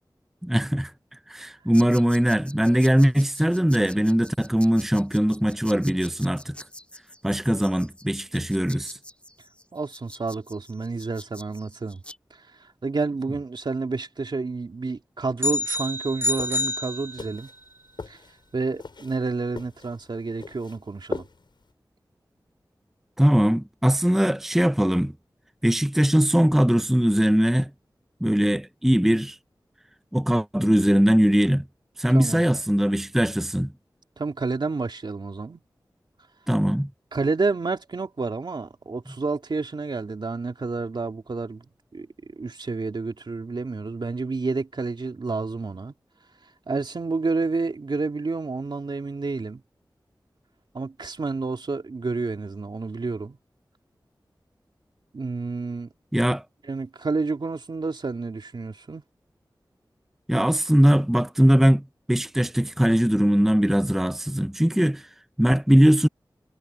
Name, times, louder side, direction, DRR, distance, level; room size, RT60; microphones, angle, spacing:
voice 1, 0.4-0.9 1.3-6.6 7.2-9.0 23.2-25.1 25.6-27.7 28.2-29.4 30.1-31.7 32.0-33.7 36.5-36.9 56.1-56.4 60.3-65.1 65.4-66.1, equal, 5° right, 0.5 m, -20 dB
sound 1, 1.7-12.2, left 1 dB, 15° left, 2.3 m, -46 dB
voice 2, 9.7-12.0 12.3-17.5 18.1-18.2 18.5-21.2 32.1-32.4 34.2-35.6 37.1-41.7 41.9-42.1 42.4-45.9 46.7-49.6 50.7-53.4 55.1-55.9 56.7-59.0, right 3 dB, 70° right, 2.7 m, -29 dB
sound 2, 15.4-17.6, left 2 dB, 30° right, 1.6 m, -28 dB
sound 3, 16.3-21.7, left 4 dB, 75° left, 7.1 m, -40 dB
wide cardioid pair, 50°, 8 cm